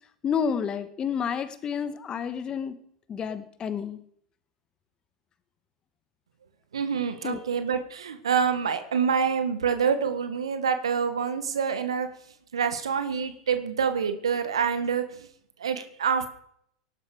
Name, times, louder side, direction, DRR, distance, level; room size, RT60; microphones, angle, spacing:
voice 1, 0.2-2.8 3.1-4.0 7.2-7.4, left 7 dB, 30° left, 11 dB, 1.6 m, -30 dB
voice 2, 6.7-12.1 12.5-15.3 15.6-16.3, right 6 dB, 80° right, 9 dB, 1.7 m, -26 dB
18.0 x 11.5 x 5.1 m, 0.68 s
hypercardioid pair, 90°, 3 cm